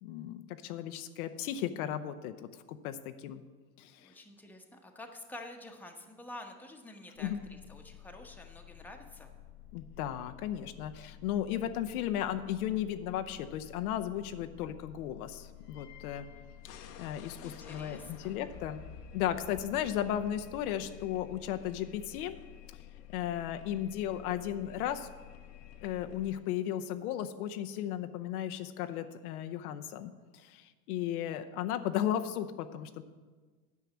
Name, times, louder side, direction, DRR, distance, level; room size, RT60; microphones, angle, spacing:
voice 1, 0.0-3.4 3.8-4.1 7.2-7.4 9.7-16.3 16.8-18.8 19.1-22.4 23.1-25.1 25.8-33.0, left 11 dB, 70° left, 8 dB, 0.7 m, -35 dB
voice 2, 4.0-9.3 17.2-18.3, left 1 dB, 5° left, 3 dB, 1.0 m, -49 dB
sound 1, 7.2-26.4, left 10 dB, 85° left, 1.1 m, -51 dB
9.6 x 5.5 x 7.2 m, 1.4 s
hypercardioid pair, 105°, 47 cm